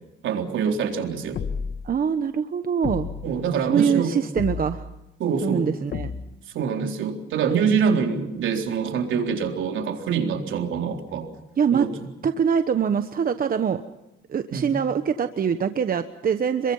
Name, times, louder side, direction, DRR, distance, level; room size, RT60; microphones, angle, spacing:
voice 1, 0.2-1.4 3.2-4.1 5.2-5.7 6.5-11.3 11.7-12.1 14.5-14.8, right 6 dB, 75° right, 3 dB, 4.0 m, -25 dB
sound 1, 1.3-2.0 2.8-3.4 4.4-5.0 5.9-6.5, left 6 dB, 55° left, 1.4 m, -32 dB
voice 2, 1.8-3.1 3.7-4.8 5.4-6.1 11.6-11.9 12.2-13.8 14.3-16.7, right 7 dB, 45° right, 9 dB, 1.2 m, -23 dB
27.5 x 23.0 x 5.6 m, 0.97 s
cardioid pair, 90°, 20 cm